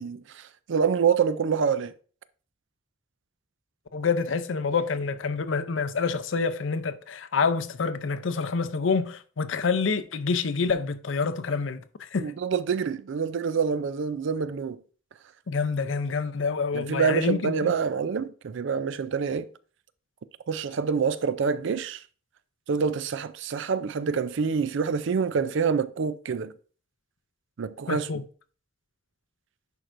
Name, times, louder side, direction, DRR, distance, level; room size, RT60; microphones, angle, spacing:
voice 1, 0.0-1.9 12.2-14.8 16.7-19.5 20.5-22.0 22.7-26.5 27.6-28.1, right 6 dB, 65° right, 0.4 m, -26 dB
voice 2, 3.9-12.3 15.5-17.7 27.9-28.2, left 5 dB, 70° left, 0.6 m, -27 dB
10.5 x 4.5 x 2.6 m
head